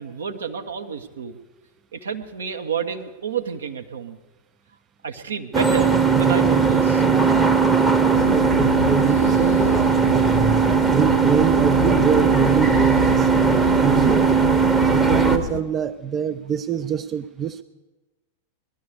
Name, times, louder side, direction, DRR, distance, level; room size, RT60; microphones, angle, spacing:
voice 1, 0.0-1.4 1.9-4.2 5.0-7.0, right 6 dB, 65° right, 6 dB, 0.9 m, -30 dB
sound 1, 5.5-15.4, right 5 dB, 10° right, 0.8 m, -18 dB
voice 2, 8.0-10.3 10.9-14.3 14.9-17.6, right 7 dB, 25° right, 11 dB, 0.4 m, -25 dB
sound 2, 8.1-15.6, left 12 dB, 50° left, 0.5 m, -29 dB
19.0 x 12.0 x 4.9 m, 1.2 s
figure-of-eight pair, 90°, 0 cm